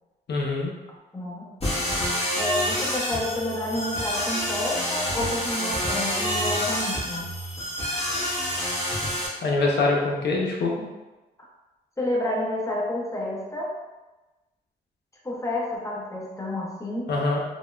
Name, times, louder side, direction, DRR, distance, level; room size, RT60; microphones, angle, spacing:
voice 1, 0.3-0.7 9.4-10.7 17.1-17.4, left 3 dB, 70° left, -2 dB, 0.7 m, -24 dB
voice 2, 1.1-1.5 2.4-7.3 12.0-13.7 15.2-17.1, left 1 dB, 15° left, -3 dB, 0.8 m, -29 dB
sound 1, 1.6-9.3, equal, 35° left, 1.2 m, -27 dB
3.4 x 2.1 x 2.3 m, 1.1 s
cardioid pair, 60°, 18 cm